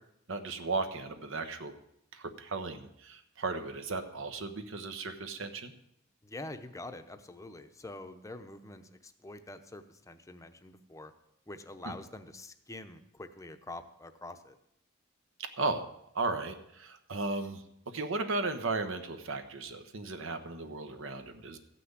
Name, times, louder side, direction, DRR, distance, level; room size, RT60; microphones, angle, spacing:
voice 1, 0.3-1.7 2.1-5.7 11.8-11.9 15.4-15.9 16.1-21.6, right 3 dB, 65° right, 7 dB, 1.1 m, -35 dB
voice 2, 6.2-11.1 11.5-14.6, left 2 dB, 15° left, 8 dB, 0.8 m, -46 dB
14.5 x 6.0 x 8.1 m, 0.79 s
head